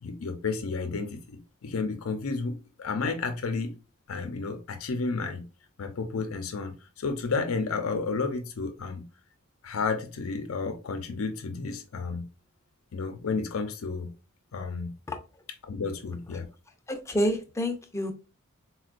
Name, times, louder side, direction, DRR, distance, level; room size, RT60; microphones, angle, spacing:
voice 1, 0.0-3.7 4.1-5.4 5.8-9.0 9.6-12.2 12.9-14.1 14.5-14.9 15.6-16.5, left 4 dB, 80° left, 0.5 m, -32 dB
voice 2, 16.9-18.1, equal, 15° left, 0.5 m, -28 dB
4.1 x 2.2 x 2.4 m
head